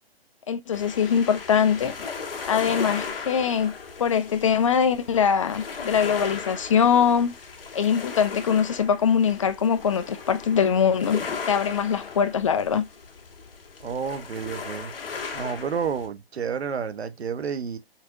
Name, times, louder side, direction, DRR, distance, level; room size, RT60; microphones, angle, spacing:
voice 1, 0.5-1.9 2.5-3.7 4.0-7.3 7.7-11.2 11.5-12.8, left 7 dB, 30° left, 0.4 m, -22 dB
sound 1, 0.7-16.1, left 5 dB, 60° left, 1.5 m, -37 dB
voice 2, 13.8-14.9 15.3-17.8, right 6 dB, 80° right, 1.1 m, -30 dB
5.6 x 3.4 x 2.6 m
hypercardioid pair, 145°, 31 cm